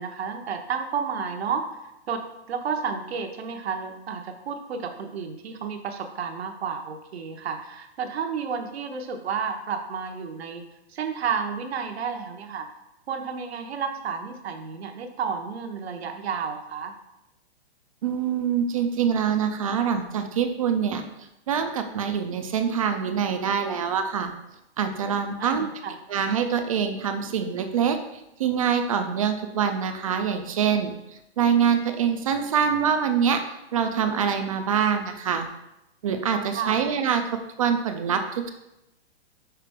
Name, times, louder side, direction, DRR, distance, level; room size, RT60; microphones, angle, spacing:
voice 1, 0.0-1.6 2.1-2.2 2.5-10.6 10.9-12.7 13.1-16.9 25.4-25.9 36.5-36.8, right 6 dB, 65° right, 5 dB, 1.0 m, -31 dB
voice 2, 18.0-21.0 21.5-24.3 24.8-25.7 26.1-30.9 31.4-33.4 33.7-35.5 36.0-37.2 37.6-38.5, right 7 dB, 30° right, 6 dB, 0.4 m, -24 dB
5.8 x 4.5 x 3.6 m, 0.88 s
hypercardioid pair, 155°, 33 cm